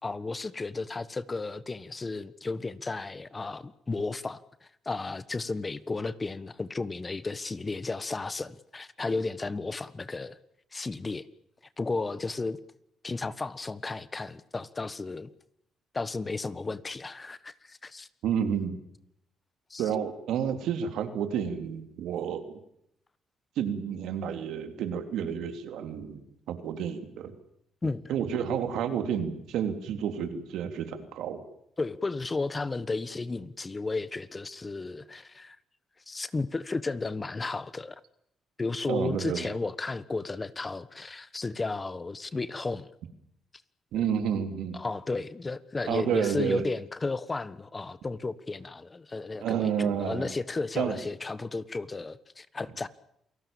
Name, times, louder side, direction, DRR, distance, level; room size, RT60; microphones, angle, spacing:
voice 1, 0.0-4.4 4.8-10.4 10.7-11.3 11.8-12.6 13.0-15.3 15.9-18.1 19.7-19.8 27.8-28.1 31.8-35.6 36.1-37.9 38.6-42.9 44.7-52.9, left 3 dB, 25° left, 1.4 m, -33 dB
voice 2, 18.2-18.8 19.8-22.6 23.6-26.2 26.5-27.3 28.1-31.4 38.9-39.5 43.9-44.8 45.9-46.6 49.4-50.3 50.8-51.0, right 8 dB, 80° right, 3.3 m, -30 dB
28.5 x 18.5 x 7.3 m
cardioid pair, 90°, 0 cm